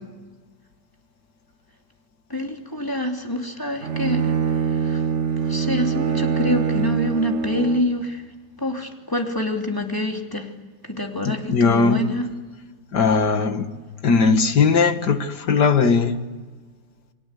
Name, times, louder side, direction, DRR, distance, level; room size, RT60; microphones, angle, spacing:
voice 1, 2.3-4.3 4.8-5.0 5.4-8.2 8.6-10.5 10.9-12.3, left 1 dB, 10° left, 2 dB, 2.9 m, -26 dB
Bowed string instrument, 3.8-8.0, right 6 dB, 45° right, 1.4 m, -24 dB
voice 2, 11.3-12.0 12.9-13.7 14.0-16.2, left 5 dB, 80° left, 8 dB, 2.3 m, -18 dB
29.5 x 23.0 x 8.3 m, 1.3 s
omnidirectional pair, 1.8 m